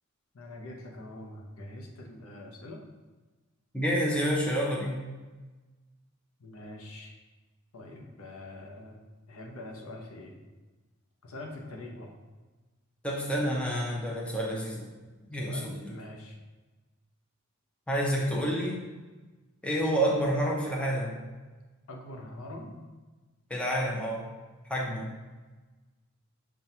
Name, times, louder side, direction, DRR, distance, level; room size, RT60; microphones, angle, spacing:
voice 1, 0.3-2.8 6.4-7.1 7.7-9.0 9.3-10.3 11.2-12.1 15.3-16.4 21.9-22.8, left 1 dB, 75° left, 1 dB, 0.6 m, -44 dB
voice 2, 3.7-5.1 13.0-14.9 15.3-15.7 17.9-18.8 19.6-21.2 23.5-24.3 24.7-25.1, equal, 5° left, -4 dB, 0.6 m, -29 dB
5.7 x 2.3 x 2.7 m, 1.2 s
head